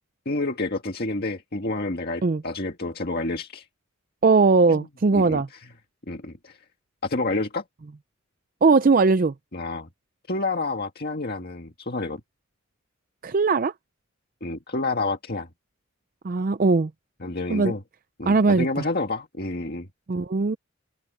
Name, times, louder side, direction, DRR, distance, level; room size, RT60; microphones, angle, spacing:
voice 1, 0.3-3.6 4.7-4.9 5.1-5.4 6.1-6.6 7.0-7.6 9.5-9.9 10.3-12.2 14.4-15.5 17.2-17.8 18.2-19.9, left 2 dB, 45° left, 1.8 m, -29 dB
voice 2, 4.2-5.5 8.6-9.3 13.2-13.7 16.2-16.9 17.5-17.7 18.3-18.9 20.1-20.6, right 4 dB, 40° right, 0.4 m, -19 dB
head